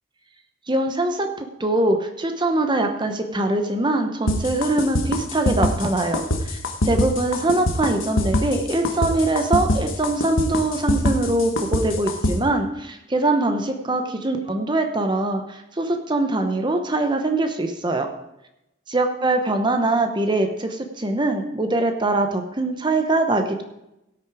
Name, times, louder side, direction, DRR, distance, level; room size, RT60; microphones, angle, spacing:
voice 1, 0.7-6.6 6.8-18.1 18.9-23.6, right 2 dB, 25° right, 5 dB, 0.9 m, -23 dB
sound 1, 4.3-12.3, left 1 dB, 85° left, 1.4 m, -23 dB
17.0 x 6.5 x 4.9 m, 0.88 s
head